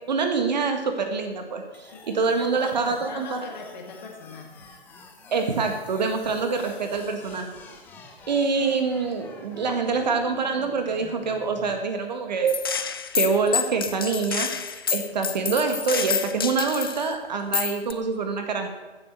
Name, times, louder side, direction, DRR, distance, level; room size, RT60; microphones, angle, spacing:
voice 1, 0.1-3.4 5.3-7.6 8.3-12.6 13.1-18.7, right 4 dB, 45° right, 5 dB, 1.8 m, -25 dB
sound 1, 1.7-11.7, left 3 dB, 5° left, 0.8 m, -47 dB
voice 2, 1.9-4.7, left 4 dB, 45° left, 1 dB, 2.2 m, -40 dB
Gunshot gunfire, 12.5-17.1 17.5-17.9, left 7 dB, 25° left, 0.5 m, -28 dB
15.0 x 7.7 x 7.0 m, 1.2 s
figure-of-eight pair, 135°, 32 cm